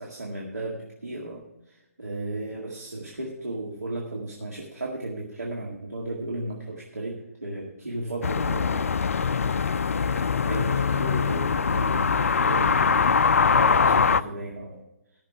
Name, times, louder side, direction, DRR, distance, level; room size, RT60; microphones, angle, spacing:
voice 1, 0.0-8.9 10.0-13.2 13.4-14.8, right 2 dB, 80° right, -3 dB, 2.0 m, -35 dB
sound 1, 8.2-14.2, left 5 dB, 60° left, 0.4 m, -22 dB
13.5 x 6.5 x 5.8 m, 0.94 s
figure-of-eight pair, 135°, 8 cm